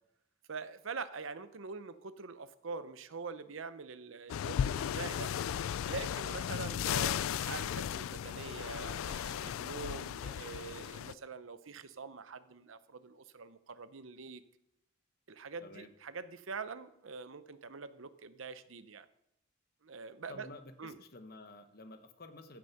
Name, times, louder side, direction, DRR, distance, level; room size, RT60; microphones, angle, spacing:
voice 1, 0.5-5.3 5.9-14.4 15.3-19.1 19.8-20.5 20.8-21.0, right 4 dB, 75° right, 12 dB, 0.7 m, -44 dB
sound 1, 4.3-11.1, left 9 dB, 85° left, 0.3 m, -36 dB
voice 2, 20.3-22.6, left 2 dB, 50° left, 7 dB, 1.1 m, -51 dB
15.0 x 6.3 x 5.9 m, 0.81 s
head